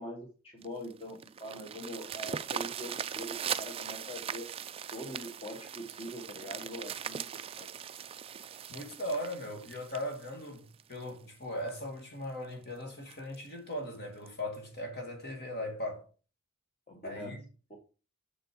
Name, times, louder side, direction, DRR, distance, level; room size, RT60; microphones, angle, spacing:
voice 1, 0.0-4.5 4.9-7.3 7.6-7.7 16.9-17.4 17.7-17.8, equal, 25° left, 1.4 m, -43 dB
sound 1, 0.6-11.1 11.7-11.8 12.2-12.3 12.6-12.7 13.1-13.4 14.3-14.4, right 8 dB, 25° right, 0.3 m, -40 dB
voice 2, 8.7-16.1 17.0-17.4, left 1 dB, 50° left, 2.4 m, -38 dB
6.9 x 6.3 x 4.7 m
head